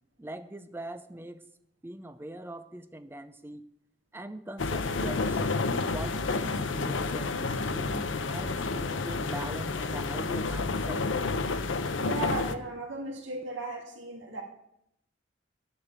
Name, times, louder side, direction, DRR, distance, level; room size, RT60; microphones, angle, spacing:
voice 1, 0.2-1.4 1.8-3.6 4.1-11.1, right 1 dB, 10° right, 11 dB, 0.4 m, -42 dB
sound 1, 4.6-12.5, left 3 dB, 80° left, 0.7 m, -30 dB
voice 2, 12.0-14.4, right 2 dB, 80° right, 1 dB, 2.0 m, -36 dB
8.9 x 7.1 x 8.0 m, 0.80 s
head